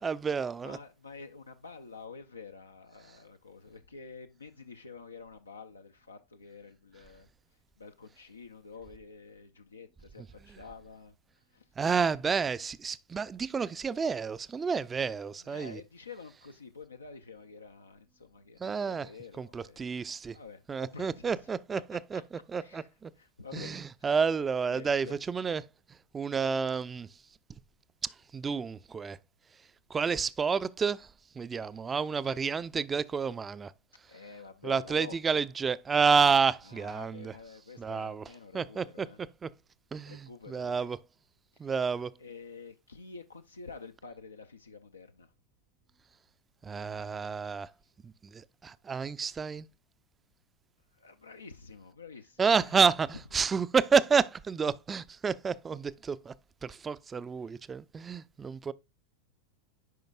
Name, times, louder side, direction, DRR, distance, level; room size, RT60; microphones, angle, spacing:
voice 1, 0.0-0.8 10.5-10.6 11.8-15.8 18.6-19.1 19.4-20.4 20.7-22.2 22.5-23.1 23.5-25.6 25.9-27.2 28.0-29.2 29.9-33.7 34.6-37.3 37.8-38.2 38.5-39.5 39.9-41.0 41.6-42.1 46.6-47.7 48.0-49.7 52.4-56.3 56.6-58.7, right 5 dB, 20° right, 0.4 m, -30 dB
voice 2, 0.6-7.3 7.8-11.2 11.5-11.7 15.4-20.0 20.3-21.3 22.1-22.2 22.6-22.9 23.2-24.1 24.6-25.2 34.1-35.5 36.6-39.2 40.1-40.9 41.6-41.7 42.2-45.3 50.9-52.9, left 4 dB, 90° left, 0.5 m, -48 dB
9.3 x 5.2 x 2.3 m
hypercardioid pair, 90°, 0 cm